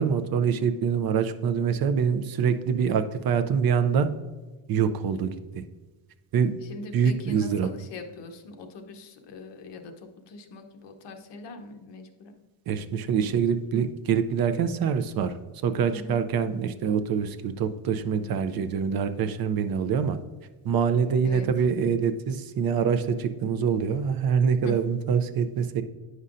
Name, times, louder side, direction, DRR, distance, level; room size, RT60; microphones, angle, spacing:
voice 1, 0.0-4.1 4.7-5.6 6.3-6.6 6.9-7.7 12.7-15.3 15.6-20.2 20.6-25.8, right 7 dB, 50° right, 9 dB, 0.5 m, -25 dB
voice 2, 6.6-12.3 15.9-16.2 21.2-21.5 24.6-24.8, left 3 dB, 55° left, 4 dB, 0.9 m, -42 dB
9.5 x 5.5 x 2.5 m, 1.3 s
cardioid pair, 170°, 50 cm